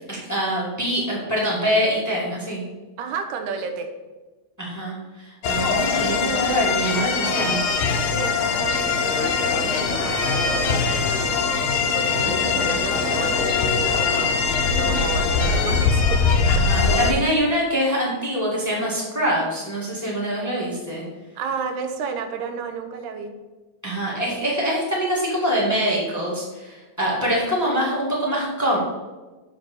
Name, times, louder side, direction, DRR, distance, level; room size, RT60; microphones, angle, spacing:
voice 1, 0.0-2.6 4.6-7.6 12.2-12.7 16.5-21.0 23.8-28.8, equal, 5° left, -5 dB, 1.5 m, -24 dB
voice 2, 3.0-3.9 8.1-16.6 21.4-23.3, right 5 dB, 90° right, 6 dB, 2.3 m, -32 dB
sound 1, 5.4-17.1, left 5 dB, 70° left, 1.3 m, -22 dB
sound 2, 8.6-16.4, right 1 dB, 65° right, 2.2 m, -35 dB
7.1 x 4.7 x 6.8 m, 1.2 s
omnidirectional pair, 3.4 m